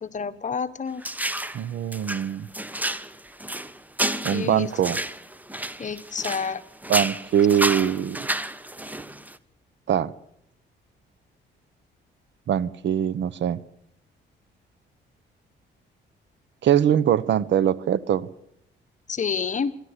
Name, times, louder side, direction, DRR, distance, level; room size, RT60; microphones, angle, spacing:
voice 1, 0.0-1.0 4.3-4.7 5.8-6.6 19.1-19.7, left 6 dB, 40° left, 11 dB, 1.4 m, -29 dB
sound 1, 1.0-1.6 1.9-6.6 6.8-9.4, right 1 dB, 10° right, 1.1 m, -30 dB
voice 2, 1.5-2.5 4.2-5.0 6.9-8.2 9.9-10.1 12.5-13.6 16.6-18.3, right 9 dB, 65° right, 18 dB, 1.0 m, -22 dB
26.5 x 12.0 x 9.8 m, 0.77 s
cardioid pair, 90°, 20 cm